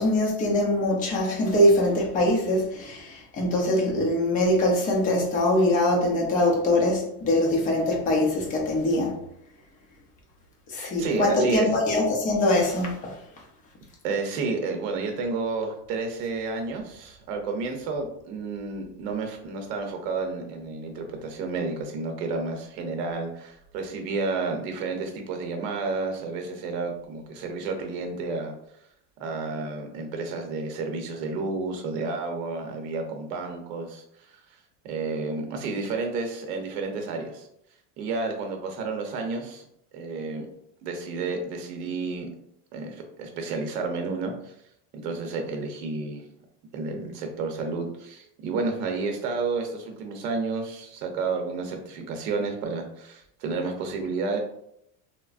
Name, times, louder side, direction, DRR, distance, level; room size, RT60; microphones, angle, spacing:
voice 1, 0.0-9.2 10.7-13.1, left 1 dB, 20° left, -1 dB, 0.4 m, -23 dB
voice 2, 10.8-11.7 14.0-28.5 29.2-34.4 34.8-37.5 38.0-39.7 39.9-40.5 40.8-42.3 42.7-44.5 44.9-46.2 46.7-54.4, right 3 dB, 85° right, 4 dB, 0.8 m, -31 dB
3.2 x 2.0 x 2.4 m, 0.75 s
supercardioid pair, 145°, 47 cm